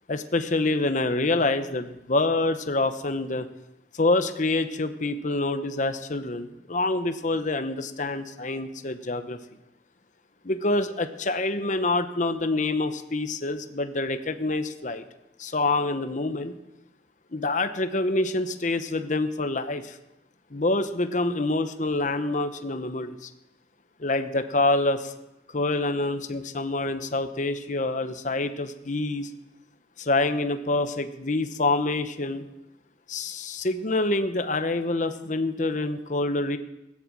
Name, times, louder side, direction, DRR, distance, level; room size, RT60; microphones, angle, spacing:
voice 1, 0.1-3.5 4.0-9.4 10.4-15.0 15.4-16.6 17.3-20.0 20.5-23.3 24.0-25.1 25.5-29.3 30.0-32.4 33.1-36.6, left 2 dB, 45° left, 9 dB, 0.9 m, -26 dB
16.0 x 10.0 x 7.5 m, 0.94 s
head